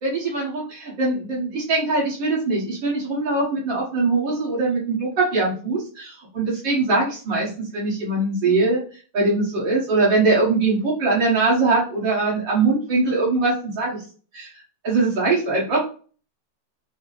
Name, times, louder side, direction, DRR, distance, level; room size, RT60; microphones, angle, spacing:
voice 1, 0.0-8.8 9.1-14.0 14.3-14.5 14.8-15.8, right 3 dB, 85° right, -6 dB, 2.3 m, -22 dB
6.0 x 2.0 x 4.0 m, 0.39 s
omnidirectional pair, 2.0 m